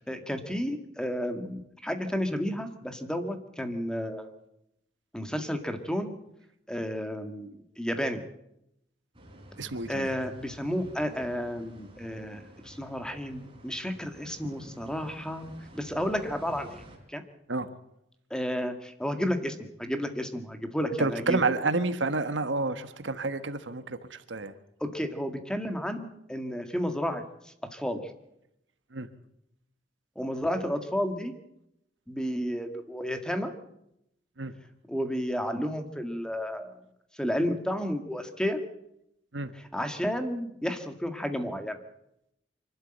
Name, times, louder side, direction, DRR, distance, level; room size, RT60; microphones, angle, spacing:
voice 1, 0.1-4.3 5.1-6.2 6.7-8.2 9.9-15.5 15.7-16.8 17.1-17.2 18.3-21.6 24.8-28.0 30.2-31.3 32.1-33.5 34.9-36.7 37.2-38.6 39.7-41.8, equal, 5° left, 7 dB, 1.9 m, -32 dB
sound 1, 9.1-17.0, equal, 30° right, 4.5 m, -50 dB
voice 2, 9.6-10.1 17.5-17.7 21.0-24.5 28.9-29.1 34.4-34.5 39.3-39.5, right 3 dB, 80° right, 10 dB, 1.4 m, -29 dB
25.0 x 12.5 x 8.9 m, 0.80 s
head